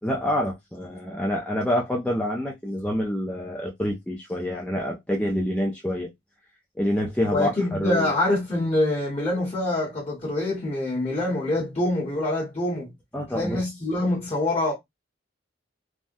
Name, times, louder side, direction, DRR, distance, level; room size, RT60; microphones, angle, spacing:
voice 1, 0.0-6.1 6.8-8.1 13.1-13.6, equal, 5° left, 0.4 m, -27 dB
voice 2, 7.3-12.9 13.3-14.7, left 1 dB, 30° left, 1.1 m, -25 dB
3.4 x 2.1 x 2.6 m
head